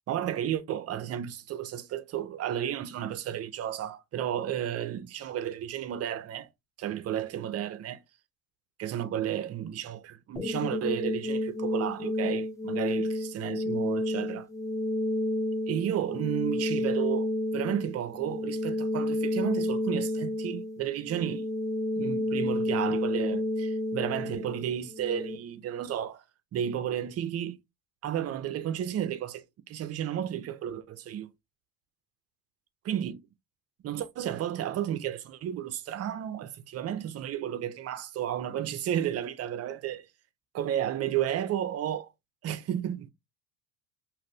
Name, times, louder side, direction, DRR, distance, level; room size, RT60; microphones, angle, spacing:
voice 1, 0.1-6.5 6.8-8.0 8.8-14.5 15.7-21.5 22.0-26.2 26.5-27.6 28.0-31.3 32.9-33.2 33.8-40.1 40.5-42.1 42.4-43.1, right 10 dB, 40° right, 0.5 m, -32 dB
sound 1, 10.4-25.4, left 1 dB, 10° left, 0.8 m, -30 dB
2.5 x 2.5 x 3.3 m
supercardioid pair, 85°, 40 cm